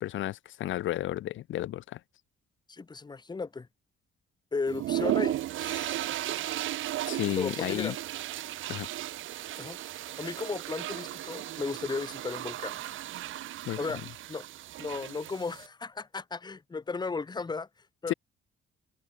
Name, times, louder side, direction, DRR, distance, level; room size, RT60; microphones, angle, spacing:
voice 1, 0.0-2.0 7.1-7.9 8.7-8.9 13.7-13.8 18.1-18.2, left 14 dB, 75° left, 1.1 m, -32 dB
voice 2, 2.7-3.7 4.5-6.2 7.4-7.9 9.6-9.8 10.2-12.8 13.8-14.0 14.3-14.5 14.8-17.7 18.0-18.1, left 4 dB, 20° left, 1.1 m, -35 dB
sound 1, 4.7-15.7, right 14 dB, 80° right, 1.5 m, -35 dB
open air
cardioid pair, 90°, 20 cm